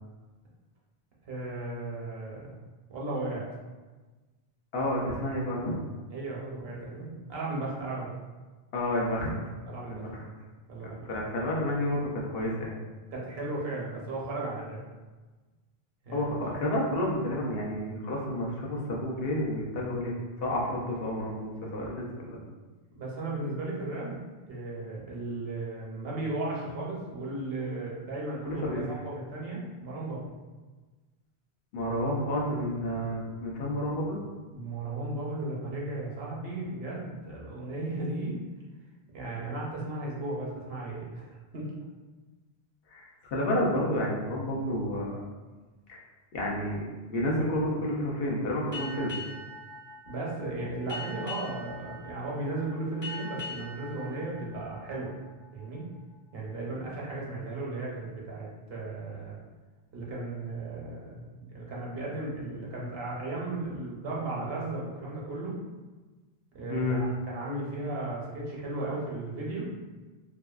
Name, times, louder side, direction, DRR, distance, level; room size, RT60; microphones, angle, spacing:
voice 1, 1.3-2.5 2.9-3.4 6.1-8.1 9.6-10.1 10.7-11.1 13.1-14.8 16.0-16.3 22.9-24.2 24.5-30.3 34.5-38.4 39.1-41.7 50.1-55.1 55.5-55.9 56.3-59.4 59.9-65.6 66.5-69.7, right 2 dB, 70° right, -4 dB, 0.9 m, -35 dB
voice 2, 4.7-5.9 8.7-9.3 9.9-10.2 11.1-12.8 16.1-20.1 20.4-22.4 28.5-28.8 31.7-34.2 42.9-45.2 45.9-46.0 46.3-49.1 66.7-67.0, left 1 dB, 70° left, -3 dB, 0.8 m, -30 dB
Boat Water vehicle, 48.7-55.8, left 2 dB, 25° left, 0.5 m, -42 dB
2.6 x 2.2 x 2.3 m, 1.3 s
omnidirectional pair, 1.0 m